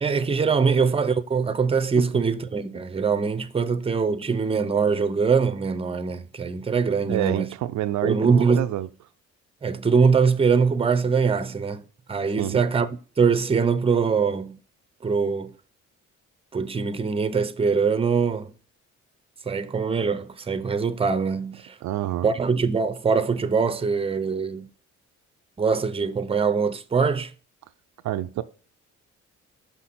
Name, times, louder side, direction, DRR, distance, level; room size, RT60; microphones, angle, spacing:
voice 1, 0.0-7.5 8.0-8.6 9.6-12.9 13.2-14.6 15.0-15.6 16.5-18.5 19.5-21.8 22.2-24.7 25.6-27.3, right 5 dB, 20° right, 0.6 m, -23 dB
voice 2, 7.1-8.9 12.4-12.6 21.8-22.3 28.0-28.4, right 13 dB, 70° right, 0.5 m, -27 dB
5.8 x 5.8 x 4.1 m
cardioid pair, 90°, 30 cm